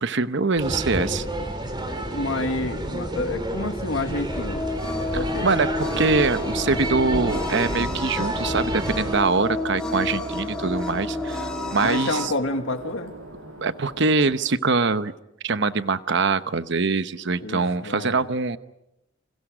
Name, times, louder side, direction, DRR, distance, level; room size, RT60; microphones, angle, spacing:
voice 1, 0.0-1.2 5.1-12.3 13.6-15.1 15.4-18.6, right 4 dB, 60° right, 12 dB, 0.9 m, -23 dB
sound 1, 0.6-9.2, right 1 dB, 20° right, 4.1 m, -30 dB
voice 2, 2.1-4.7 5.1-5.5 11.8-13.1 17.4-18.3, left 2 dB, 70° left, 6 dB, 2.0 m, -29 dB
sound 2, 4.3-12.3, left 2 dB, 5° left, 3.4 m, -30 dB
sound 3, 4.7-14.4, right 2 dB, 75° right, 6.5 m, -41 dB
29.5 x 27.5 x 5.0 m, 0.88 s
head